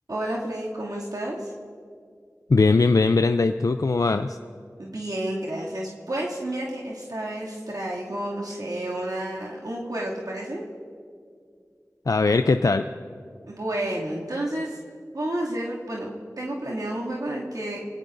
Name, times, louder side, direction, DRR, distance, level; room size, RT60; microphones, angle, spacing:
voice 1, 0.1-1.5 4.8-10.6 13.5-14.8 15.1-17.8, right 1 dB, 70° right, -5 dB, 2.4 m, -30 dB
voice 2, 2.5-4.4 12.1-12.8, left 3 dB, 65° left, 8 dB, 0.4 m, -20 dB
23.0 x 18.0 x 2.6 m, 2.1 s
wide cardioid pair, 40°, 6 cm